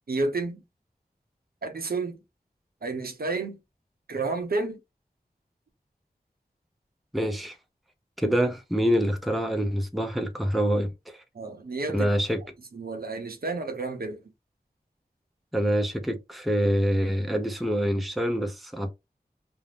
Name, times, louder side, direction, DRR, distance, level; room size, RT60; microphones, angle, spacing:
voice 1, 0.1-0.6 1.6-2.2 2.8-3.6 4.1-4.8 11.3-12.1 12.7-14.2, right 3 dB, 70° right, 0.7 m, -30 dB
voice 2, 7.1-7.5 8.2-10.9 11.9-12.4 15.5-18.9, equal, ahead, 0.5 m, -25 dB
2.5 x 2.0 x 3.2 m
wide cardioid pair, 60°, 16 cm